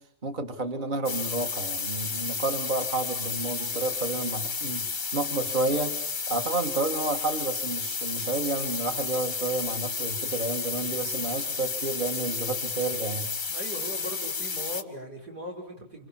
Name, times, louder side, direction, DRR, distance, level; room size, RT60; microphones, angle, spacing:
voice 1, 0.2-6.0 6.3-13.3, right 3 dB, 30° right, 5 dB, 2.1 m, -30 dB
sound 1, 1.0-14.8, left 5 dB, 35° left, 1.2 m, -32 dB
voice 2, 13.5-16.1, equal, 85° right, 1 dB, 6.2 m, -39 dB
27.5 x 26.5 x 7.4 m, 0.69 s
omnidirectional pair, 1.7 m